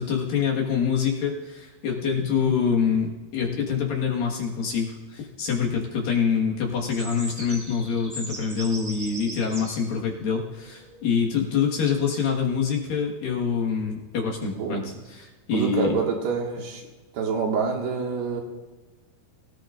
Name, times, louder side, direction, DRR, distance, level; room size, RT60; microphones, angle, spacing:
voice 1, 0.0-16.0, left 6 dB, 60° left, -2 dB, 3.1 m, -25 dB
sound 1, 6.9-12.3, right 1 dB, 30° right, 1.4 m, -40 dB
voice 2, 14.4-14.9 15.5-16.8 17.1-18.4, right 5 dB, 70° right, 0 dB, 3.8 m, -27 dB
24.5 x 17.0 x 2.6 m, 1.2 s
omnidirectional pair, 5.0 m